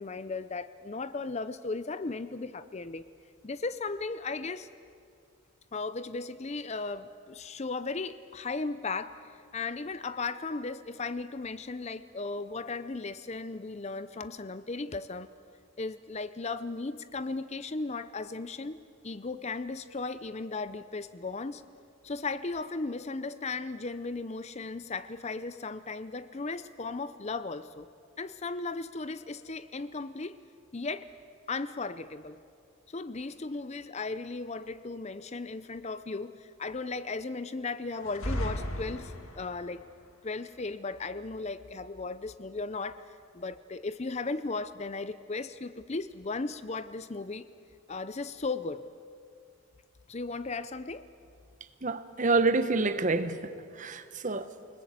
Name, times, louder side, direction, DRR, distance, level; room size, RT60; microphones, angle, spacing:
voice 1, 0.0-3.1 3.4-4.7 5.7-9.2 9.5-15.3 15.8-21.6 22.0-27.9 28.2-30.4 30.7-31.1 31.5-32.4 32.9-39.8 40.2-43.0 43.3-47.5 47.9-48.8 50.1-51.0, left 3 dB, 30° left, 14 dB, 0.5 m, -36 dB
sound 1, 38.0-39.6, equal, 70° left, 2.6 m, -35 dB
voice 2, 51.8-53.5 53.8-54.5, right 3 dB, 35° right, 11 dB, 1.0 m, -27 dB
29.0 x 20.0 x 8.2 m, 2.4 s
head